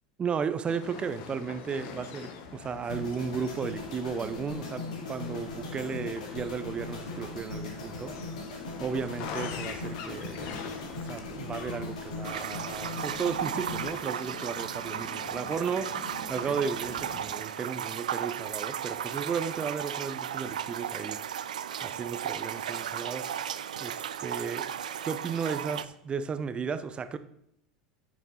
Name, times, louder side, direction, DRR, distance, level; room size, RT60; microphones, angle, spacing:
voice 1, 0.2-8.1 8.8-10.5 10.9-23.3 23.8-24.7 25.0-25.8 26.0-27.2, right 6 dB, 25° right, 13 dB, 0.6 m, -34 dB
sound 1, 0.7-17.3, left 5 dB, 55° left, 1.2 m, -43 dB
sound 2, 2.9-15.1 15.3-15.6, left 3 dB, 70° left, 2.6 m, -40 dB
sound 3, 12.2-25.8, right 9 dB, 75° right, 0.4 m, -35 dB
8.9 x 6.2 x 4.4 m, 0.74 s
hypercardioid pair, 85°, 4 cm